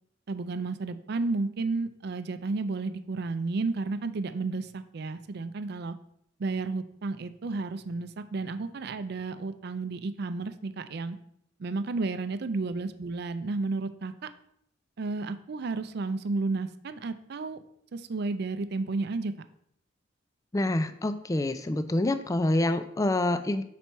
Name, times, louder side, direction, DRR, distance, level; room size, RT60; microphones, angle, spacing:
voice 1, 0.3-5.9 6.4-11.2 11.6-14.3 15.0-17.6 17.9-19.3, right 3 dB, 60° right, 11 dB, 0.5 m, -32 dB
voice 2, 20.5-23.6, left 1 dB, 20° left, 10 dB, 0.4 m, -27 dB
6.0 x 4.2 x 4.5 m, 0.70 s
head